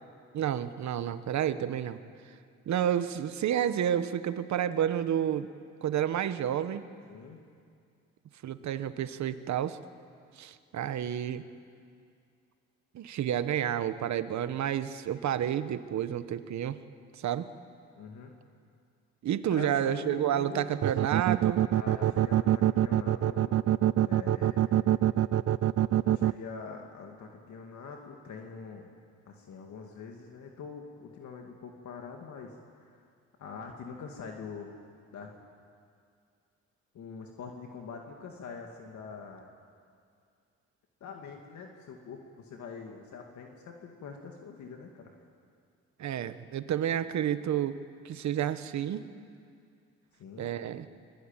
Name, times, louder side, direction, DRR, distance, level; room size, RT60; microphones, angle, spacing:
voice 1, 0.3-2.0 2.7-5.5 5.8-6.9 8.4-9.8 10.4-11.4 12.9-16.8 17.2-17.5 19.2-21.6 46.0-47.8 48.0-49.1 50.4-50.9, right 10 dB, 65° right, 11 dB, 1.2 m, -30 dB
voice 2, 7.1-7.4 18.0-18.3 19.5-20.8 21.7-23.6 24.1-24.7 26.0-28.9 29.3-33.0 33.4-34.7 35.1-35.3 36.9-39.5 41.0-45.2 50.2-50.5, left 5 dB, 70° left, 2 dB, 2.3 m, -44 dB
sound 1, 20.8-26.3, right 12 dB, 50° right, 0.6 m, -24 dB
25.0 x 21.0 x 9.0 m, 2.3 s
cardioid pair, 90°, 30 cm